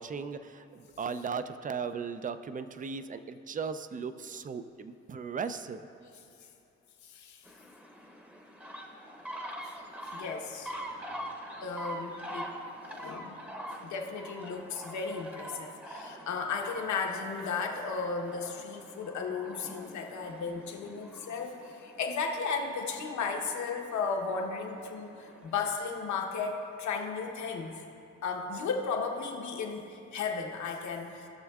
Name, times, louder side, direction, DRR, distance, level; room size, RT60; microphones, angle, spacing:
voice 1, 0.0-5.8, right 5 dB, 30° right, 11 dB, 0.4 m, -37 dB
voice 2, 7.0-7.4 9.6-9.7 10.1-10.7 11.6-12.5 12.9-27.8 28.2-31.3, left 5 dB, 70° left, 2 dB, 1.0 m, -35 dB
sound 1, 7.5-25.7, equal, 5° right, 0.8 m, -45 dB
17.5 x 6.2 x 2.4 m, 2.7 s
cardioid pair, 90°, 30 cm